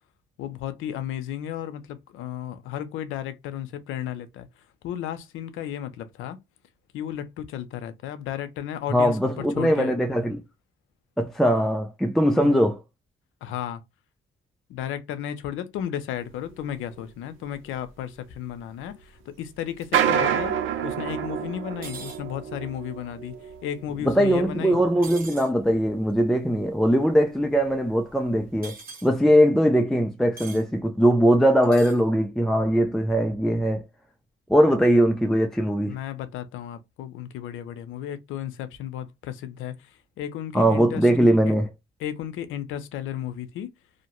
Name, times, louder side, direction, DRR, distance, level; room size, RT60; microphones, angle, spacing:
voice 1, 0.4-4.5 4.8-6.4 6.9-9.9 12.4-12.7 13.4-13.8 14.7-20.5 20.8-23.3 23.6-24.8 35.8-39.9 40.2-41.1 41.5-41.6 42.0-43.7, left 10 dB, 85° left, 0.5 m, -34 dB
voice 2, 8.9-10.4 11.2-12.8 24.1-28.7 29.0-33.8 34.5-36.0 40.5-41.7, equal, ahead, 0.3 m, -21 dB
sound 1, 16.5-16.6 16.9-17.0 17.7-17.8 18.5-18.8 19.7-26.1 26.6-26.8 27.1-27.2 27.7-27.8 28.4-28.5, right 9 dB, 80° right, 0.5 m, -29 dB
sound 2, 21.8-22.2 25.0-25.5 28.6-29.1 30.4-30.6 31.6-32.0, right 4 dB, 45° right, 1.5 m, -41 dB
2.6 x 2.1 x 2.9 m
cardioid pair, 90°, 20 cm